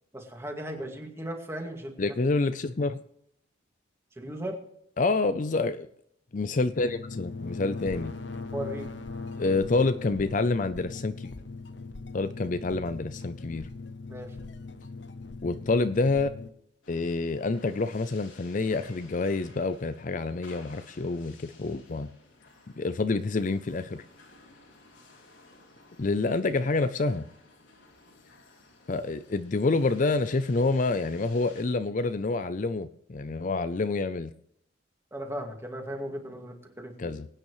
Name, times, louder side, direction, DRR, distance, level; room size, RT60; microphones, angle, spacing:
voice 1, 0.1-1.9 4.2-4.6 8.5-8.9 14.1-14.4 35.1-37.1, right 1 dB, 15° right, 2.1 m, -36 dB
voice 2, 2.0-3.0 5.0-5.9 6.3-8.1 9.4-11.3 12.1-13.7 15.4-16.3 16.9-22.1 22.8-24.0 26.0-27.3 28.9-34.3 37.0-37.3, left 3 dB, 40° left, 0.5 m, -27 dB
sound 1, 6.3-16.5, left 3 dB, 60° left, 0.8 m, -40 dB
sound 2, 16.8-31.6, left 3 dB, 90° left, 3.6 m, -55 dB
22.5 x 9.2 x 3.2 m
head